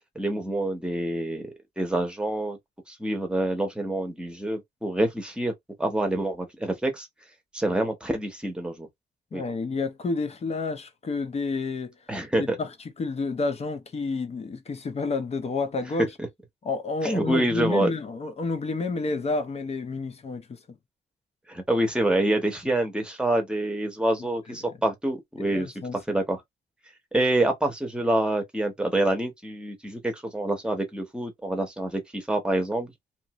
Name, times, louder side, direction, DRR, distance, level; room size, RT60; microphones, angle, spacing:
voice 1, 0.1-1.5 1.8-2.6 2.9-5.5 5.8-7.1 7.5-8.9 9.3-9.4 12.1-12.6 17.0-17.9 21.5-26.4 27.1-32.9, right 1 dB, 5° right, 0.9 m, -26 dB
voice 2, 9.3-11.9 12.4-12.7 13.0-16.1 16.6-20.8 24.5-24.6 25.5-26.0, left 3 dB, 35° left, 0.7 m, -30 dB
2.8 x 2.6 x 2.9 m
wide cardioid pair, 145°, 18 cm